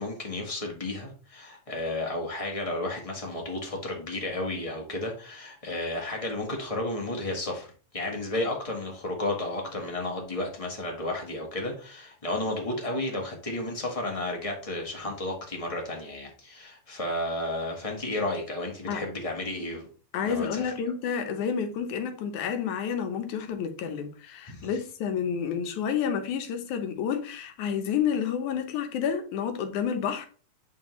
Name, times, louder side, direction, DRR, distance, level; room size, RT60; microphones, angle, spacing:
voice 1, 0.0-7.7 7.9-19.9 20.2-20.7 24.4-24.8, left 1 dB, 35° left, 0.5 m, -32 dB
voice 2, 20.1-30.3, left 7 dB, 85° left, 2.4 m, -30 dB
10.0 x 3.6 x 3.1 m
omnidirectional pair, 3.3 m